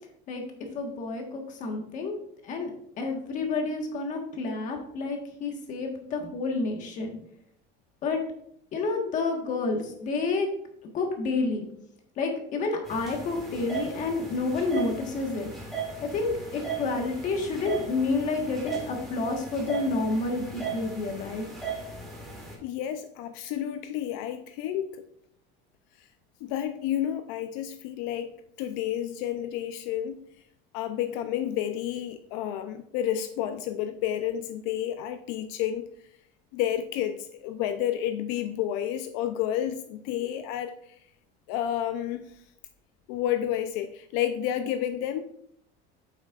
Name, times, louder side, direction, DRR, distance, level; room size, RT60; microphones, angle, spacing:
voice 1, 0.7-2.2 2.4-2.7 3.0-7.1 8.0-8.2 8.7-10.5 10.9-11.7 12.1-15.5 16.0-21.5, left 3 dB, 35° left, 3 dB, 1.5 m, -29 dB
sound 1, 12.9-22.5, right 5 dB, ahead, 1.8 m, -37 dB
voice 2, 22.6-25.0 26.4-28.3 28.6-30.2 30.7-35.8 36.5-40.8 41.5-42.3 43.1-45.2, left 11 dB, 80° left, 9 dB, 0.6 m, -30 dB
9.1 x 7.3 x 2.5 m, 0.70 s
cardioid pair, 175°, 21 cm